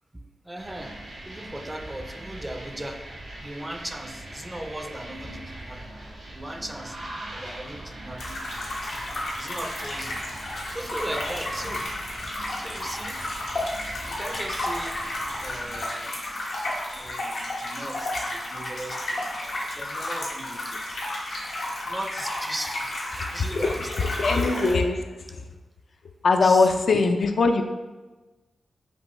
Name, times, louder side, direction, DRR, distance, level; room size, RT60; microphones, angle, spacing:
voice 1, 0.4-1.0 1.3-3.1 3.4-6.0 6.3-8.9 9.4-10.3 10.7-11.9 12.2-12.3 12.6-13.2 14.1-15.0 15.4-16.2 16.9-20.9 21.9-24.1 26.4-26.7, right 1 dB, 15° right, 6 dB, 0.4 m, -38 dB
sound 1, 0.5-15.8, right 1 dB, 80° right, 1.1 m, -41 dB
sound 2, 8.2-24.7, left 1 dB, 90° left, 1.0 m, -32 dB
voice 2, 24.0-25.0 25.3-25.4 26.2-27.6, left 3 dB, 70° left, 5 dB, 0.4 m, -21 dB
5.1 x 2.7 x 3.1 m, 1.2 s
cardioid pair, 70°, 0 cm